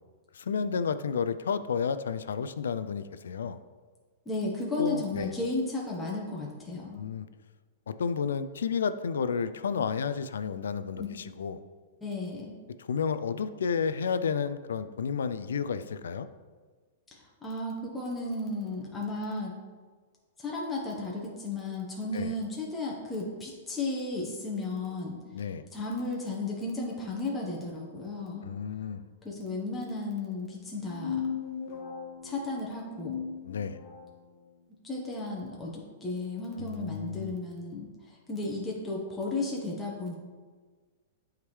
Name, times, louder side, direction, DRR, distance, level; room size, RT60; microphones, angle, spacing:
voice 1, 0.3-3.6 4.8-5.3 7.0-7.3 7.9-11.6 12.8-16.3 22.1-22.3 25.3-25.7 28.4-29.0 33.4-33.8 36.6-37.4, left 6 dB, 85° left, 12 dB, 0.3 m, -31 dB
voice 2, 4.3-7.0 11.0-11.1 12.0-12.5 17.1-19.6 20.4-25.2 25.7-28.5 29.2-31.2 32.2-33.2 34.8-35.7 36.0-40.1, left 2 dB, 10° left, -4 dB, 1.1 m, -34 dB
sound 1, 30.7-34.2, left 7 dB, 50° left, 1.4 m, -37 dB
8.3 x 3.6 x 3.2 m, 1.4 s
hypercardioid pair, 130°, 0 cm